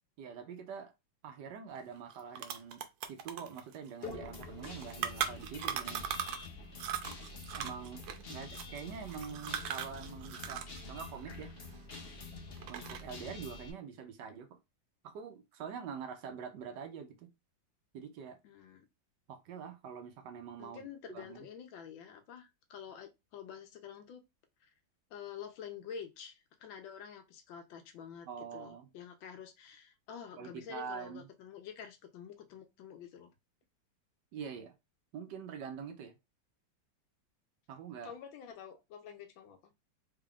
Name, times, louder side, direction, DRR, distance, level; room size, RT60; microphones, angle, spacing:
voice 1, 0.2-0.9 1.2-6.1 7.5-11.5 12.7-14.6 15.0-17.3 17.9-18.4 19.3-21.5 28.3-28.9 30.4-31.2 34.3-34.7 35.1-36.1 37.7-38.1, right 7 dB, 70° right, 1.2 m, -45 dB
sound 1, 1.8-1.9 2.1-6.5 6.8-10.8 11.0-12.2 12.6-13.2, right 9 dB, 90° right, 1.4 m, -39 dB
Guitar, 4.0-13.7, left 3 dB, 55° left, 0.6 m, -47 dB
voice 2, 18.4-18.9 20.6-24.2 24.6-24.7 25.1-33.3 38.0-39.7, left 7 dB, 85° left, 1.5 m, -48 dB
3.7 x 3.5 x 2.3 m
omnidirectional pair, 2.0 m